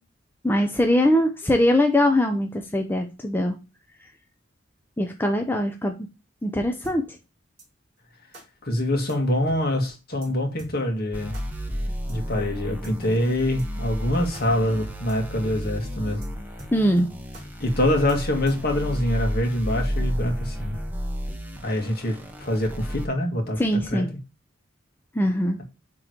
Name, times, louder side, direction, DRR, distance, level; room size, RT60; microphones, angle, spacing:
voice 1, 0.4-3.6 5.0-6.1 6.4-7.2 16.7-17.1 23.6-24.1 25.1-25.6, left 1 dB, 10° left, 0.6 m, -22 dB
sound 1, 6.8-7.0 7.6-7.7 8.3-8.4 9.1-9.2 9.5-9.6 9.8-9.9 10.2-10.3 10.6-10.7 11.3-11.4 12.1-12.2 12.8-13.0 13.6-13.7 14.0-14.1 14.3-14.5 14.7-14.8 15.1-15.2 15.5-15.6 15.8-15.9 16.2-16.3 16.6-17.0 17.3-17.4 18.1-18.7, right 1 dB, 35° right, 3.4 m, -44 dB
voice 2, 8.6-11.4 12.1-16.2 17.6-20.8 21.6-23.6 23.9-24.0, left 1 dB, 55° left, 1.9 m, -25 dB
sound 2, 11.1-23.0, equal, 10° right, 1.1 m, -32 dB
9.3 x 3.7 x 3.0 m
head